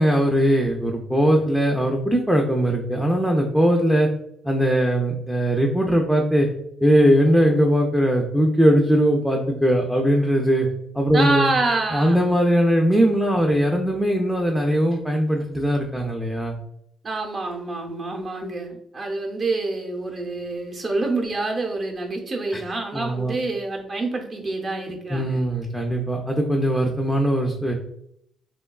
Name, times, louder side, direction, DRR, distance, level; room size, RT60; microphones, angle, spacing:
voice 1, 0.0-4.1 4.4-6.5 6.8-10.7 10.9-11.5 11.9-16.6 22.5-22.6 22.9-23.3 25.1-27.7, equal, ahead, 1 dB, 0.3 m, -20 dB
voice 2, 11.1-12.3 17.0-25.4, right 2 dB, 45° right, 1 dB, 0.6 m, -27 dB
2.9 x 2.2 x 2.2 m, 0.74 s
cardioid pair, 90°, 0 cm